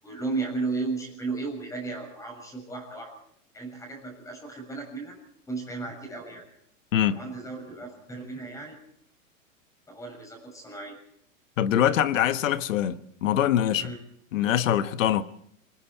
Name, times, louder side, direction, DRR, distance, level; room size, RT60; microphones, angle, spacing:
voice 1, 0.0-3.1 3.5-5.2 5.5-6.4 7.0-8.8 9.9-11.0 13.8-14.0, right 3 dB, 10° left, 7.0 m, -34 dB
voice 2, 11.6-13.9 14.3-15.2, left 11 dB, 75° left, 1.4 m, -23 dB
27.5 x 20.0 x 4.7 m
supercardioid pair, 155°, 39 cm